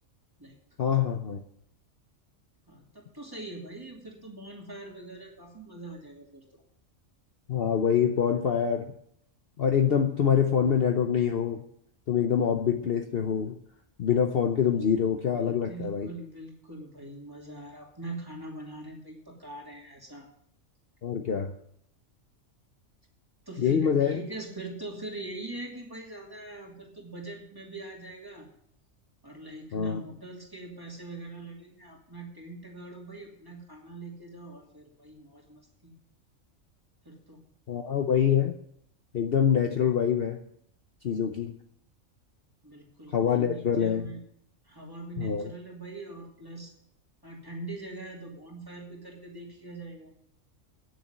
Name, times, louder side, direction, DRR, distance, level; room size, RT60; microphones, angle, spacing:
voice 1, 0.8-1.4 7.5-8.9 9.6-11.6 12.1-13.5 14.0-16.1 21.0-21.5 23.6-24.2 29.7-30.0 37.7-38.6 39.1-40.4 41.0-41.5 43.1-44.1 45.2-45.5, left 8 dB, 50° left, 5 dB, 0.9 m, -25 dB
voice 2, 2.7-6.6 15.0-20.3 23.5-28.5 29.2-35.9 37.0-37.4 42.6-44.2 44.6-46.7 47.2-50.1, right 2 dB, 15° right, -1 dB, 2.6 m, -42 dB
9.6 x 7.0 x 8.9 m, 0.69 s
omnidirectional pair, 1.4 m